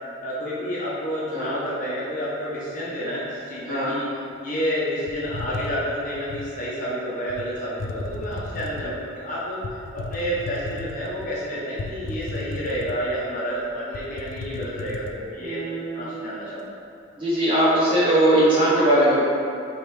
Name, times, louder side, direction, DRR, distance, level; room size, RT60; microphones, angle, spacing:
voice 1, 0.2-4.1 4.4-15.6 15.9-16.7, equal, 40° left, -7 dB, 0.8 m, -29 dB
sound 1, 5.1-6.5 7.3-7.5 7.8-9.0 9.6-11.3 11.8-13.2 13.6-13.7 13.9-15.1, left 3 dB, 75° left, 0.4 m, -34 dB
voice 2, 15.4-16.1 17.2-19.2, right 1 dB, 25° right, -11 dB, 1.4 m, -20 dB
5.1 x 3.1 x 3.3 m, 2.4 s
head